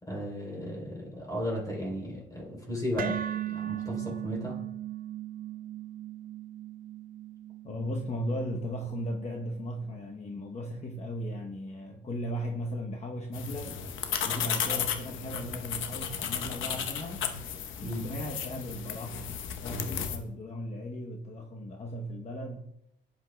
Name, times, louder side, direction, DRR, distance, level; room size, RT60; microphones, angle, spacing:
voice 1, 0.0-3.2 3.5-4.6 17.8-18.0, left 1 dB, 20° left, 3.2 m, -35 dB
sound 1, 3.0-11.1, right 11 dB, 45° right, 0.4 m, -39 dB
voice 2, 7.6-13.8 14.2-17.3 17.8-19.3 19.6-22.7, equal, 35° left, 0.9 m, -37 dB
sound 2, 13.3-20.2, left 8 dB, 80° left, 0.9 m, -34 dB
11.0 x 8.1 x 2.2 m
cardioid pair, 90°, 20 cm